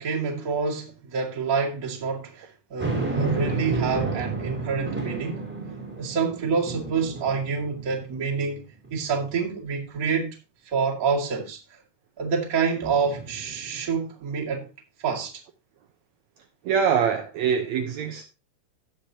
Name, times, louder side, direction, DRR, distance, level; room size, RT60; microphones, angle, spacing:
voice 1, 0.0-5.4 6.0-8.6 8.9-10.4 10.7-11.6 12.2-14.7 15.0-15.3, right 5 dB, 30° right, 2.2 m, -27 dB
sound 1, 2.8-8.3 8.8-8.9 12.8-13.9, right 3 dB, 5° right, 2.5 m, -31 dB
voice 2, 16.7-18.3, right 7 dB, 70° right, 1.9 m, -24 dB
16.5 x 6.1 x 2.8 m
omnidirectional pair, 3.8 m